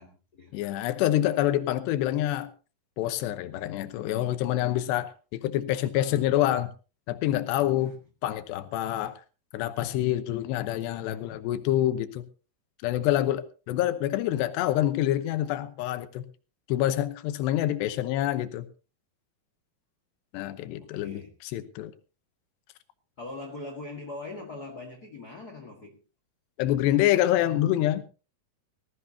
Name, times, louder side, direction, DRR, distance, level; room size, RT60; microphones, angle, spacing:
voice 1, 0.0-0.5 7.8-8.0 20.8-21.3 23.2-26.0, left 2 dB, 60° left, 1.0 m, -42 dB
voice 2, 0.5-2.5 3.0-6.7 7.1-7.9 8.2-9.2 9.5-12.2 12.8-16.2 16.7-18.7 20.3-21.9 26.6-28.0, left 13 dB, 85° left, 3.1 m, -26 dB
19.5 x 15.0 x 2.8 m
omnidirectional pair, 4.8 m